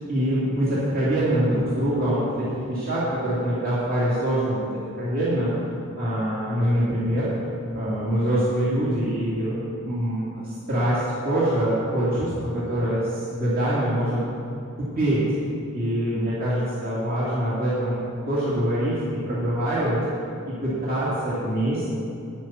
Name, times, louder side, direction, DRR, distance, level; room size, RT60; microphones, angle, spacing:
voice 1, 0.1-4.7 5.0-5.5 6.0-7.3 7.7-9.6 9.8-14.2 14.8-15.2 15.7-18.0 18.3-20.0 20.6-21.9, right 1 dB, 40° right, -9 dB, 2.7 m, -24 dB
10.5 x 10.0 x 6.0 m, 2.6 s
head